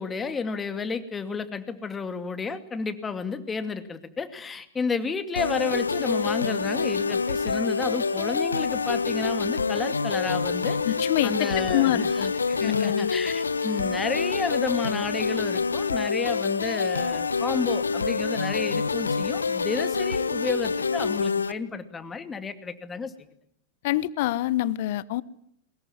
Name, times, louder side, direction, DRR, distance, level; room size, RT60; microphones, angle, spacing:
voice 1, 0.0-10.8 11.2-23.1, left 5 dB, 20° left, 10 dB, 2.4 m, -31 dB
sound 1, 5.3-21.5, left 4 dB, 85° left, 1.0 m, -26 dB
voice 2, 10.8-12.3 12.6-13.1 23.8-25.2, left 14 dB, 55° left, 19 dB, 1.0 m, -26 dB
22.0 x 20.0 x 9.8 m, 0.72 s
figure-of-eight pair, 95°, 0 cm